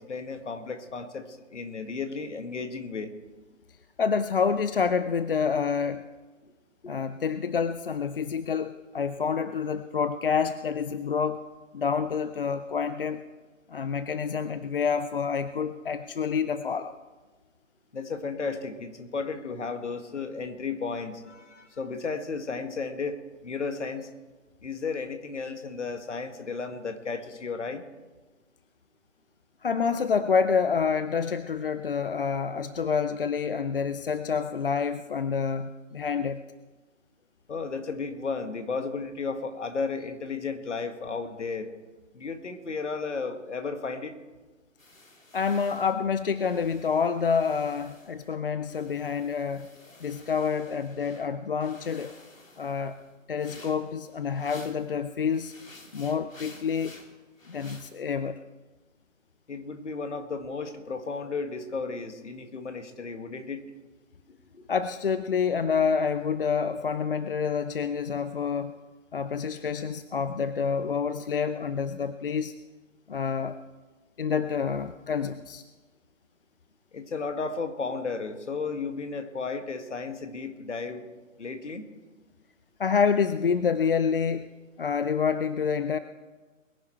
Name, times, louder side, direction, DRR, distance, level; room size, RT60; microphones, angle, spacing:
voice 1, 0.0-3.1 6.4-6.5 6.8-6.9 17.9-24.1 24.6-27.8 37.5-41.7 42.1-44.2 59.5-63.6 64.3-64.7 76.9-81.1 81.4-81.9, left 4 dB, 60° left, 7 dB, 1.8 m, -34 dB
voice 2, 4.0-6.0 6.9-11.5 11.7-13.2 13.7-17.0 29.6-36.4 45.3-49.7 50.0-52.2 52.6-53.0 53.3-55.5 55.9-57.0 57.5-58.4 64.7-68.7 69.1-72.5 73.1-73.5 74.2-75.6 82.8-84.5 84.8-86.0, left 6 dB, 45° left, 12 dB, 0.5 m, -28 dB
sound 1, 44.8-48.3 48.7-51.3 51.6-54.9 55.3-57.9, left 2 dB, 75° left, 2.6 m, -52 dB
21.5 x 10.5 x 4.4 m, 1.3 s
figure-of-eight pair, 140°, 39 cm